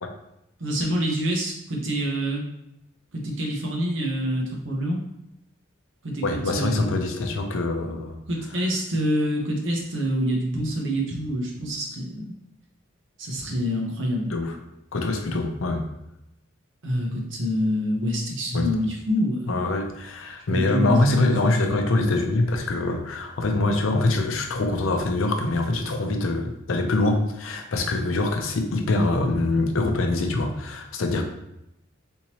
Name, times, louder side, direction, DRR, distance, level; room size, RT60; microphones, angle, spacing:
voice 1, 0.6-2.4 3.2-5.0 6.0-6.9 8.3-12.4 13.2-14.3 15.3-15.4 16.8-19.5 20.5-21.3, equal, 70° right, -1 dB, 0.9 m, -26 dB
voice 2, 6.2-8.2 14.3-14.6 14.9-15.9 18.5-18.7 19.5-31.2, left 2 dB, 85° left, 4 dB, 0.5 m, -24 dB
3.5 x 3.0 x 2.8 m, 0.86 s
head